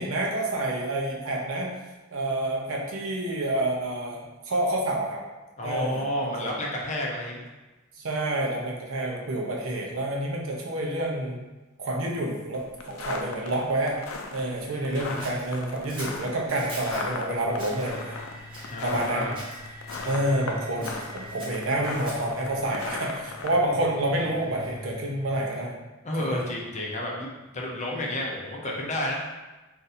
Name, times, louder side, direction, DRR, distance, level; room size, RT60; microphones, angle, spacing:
voice 1, 0.0-1.7 2.1-5.2 5.6-6.5 8.0-11.4 11.8-14.0 14.3-18.2 18.8-19.3 20.0-25.8 26.2-26.4, right 1 dB, 85° right, -1 dB, 0.7 m, -28 dB
voice 2, 5.6-7.5 14.4-15.1 18.7-19.4 26.0-29.2, left 1 dB, 35° left, -2 dB, 0.5 m, -31 dB
sound 1, 12.5-23.5, left 4 dB, 90° left, 0.4 m, -37 dB
Scissors, 15.2-17.1 17.5-17.9 18.5-19.1 19.3-20.1 20.8-22.4, right 1 dB, 25° right, 0.8 m, -43 dB
sound 2, 16.4-25.6, left 1 dB, 65° right, 1.1 m, -44 dB
2.6 x 2.5 x 4.1 m, 1.1 s
head